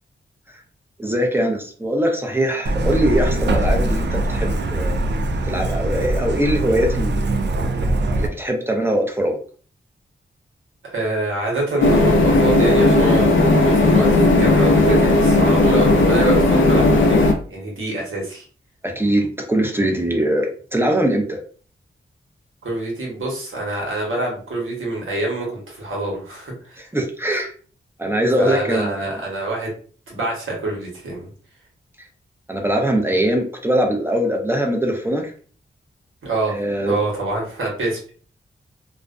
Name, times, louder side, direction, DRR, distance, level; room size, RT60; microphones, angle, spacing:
voice 1, 1.0-5.0 5.4-7.3 8.2-9.4 18.8-21.4 26.8-27.5 28.0-29.2 32.5-35.3 36.5-37.0, right 1 dB, 10° right, 2 dB, 0.7 m, -21 dB
Truck, 2.7-8.3, right 1 dB, 60° right, 0.4 m, -22 dB
voice 2, 10.8-18.4 22.6-26.8 28.4-29.7 30.1-31.3 36.2-36.6 36.8-38.1, right 2 dB, 75° right, -2 dB, 1.1 m, -26 dB
sound 1, 11.8-17.3, left 2 dB, 70° left, 0.5 m, -15 dB
2.4 x 2.1 x 2.5 m, 0.42 s
cardioid pair, 50°, 21 cm